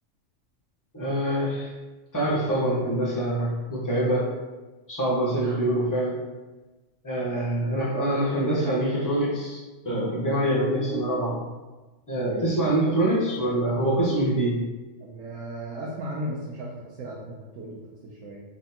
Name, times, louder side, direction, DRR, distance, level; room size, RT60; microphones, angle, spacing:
voice 1, 0.9-1.7 2.1-4.3 4.9-6.2 7.0-11.4 12.1-14.6, right 1 dB, 15° left, -6 dB, 0.9 m, -25 dB
voice 2, 12.2-12.7 15.0-18.4, right 1 dB, 85° right, -4 dB, 1.1 m, -36 dB
3.8 x 3.3 x 2.7 m, 1.2 s
omnidirectional pair, 1.3 m